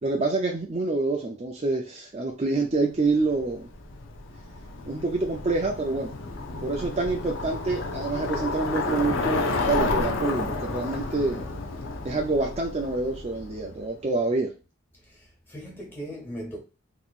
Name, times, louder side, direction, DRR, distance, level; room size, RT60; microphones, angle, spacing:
voice 1, 0.0-3.7 4.9-6.1 6.6-11.5 12.0-14.5, right 3 dB, 30° right, 0.5 m, -27 dB
Bicycle, 3.0-13.9, left 3 dB, 70° left, 0.7 m, -31 dB
voice 2, 14.9-16.6, equal, 10° left, 1.5 m, -39 dB
3.6 x 2.9 x 2.4 m
head